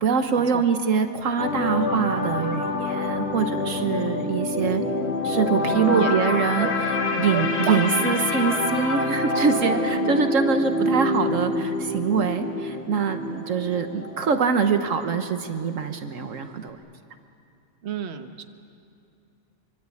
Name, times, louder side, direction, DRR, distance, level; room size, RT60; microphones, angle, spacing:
voice 1, 0.0-4.8 5.2-6.7 7.2-16.8, right 5 dB, 70° right, 7 dB, 1.4 m, -24 dB
sound 1, 1.4-15.5 15.8-16.1, left 2 dB, 50° left, 2.4 m, -27 dB
voice 2, 5.6-6.1 6.6-6.7 7.3-7.8 8.1-8.2 8.5-8.6 17.8-18.4, right 7 dB, 55° right, 7 dB, 1.3 m, -31 dB
25.0 x 24.5 x 8.5 m, 2.5 s
omnidirectional pair, 1.4 m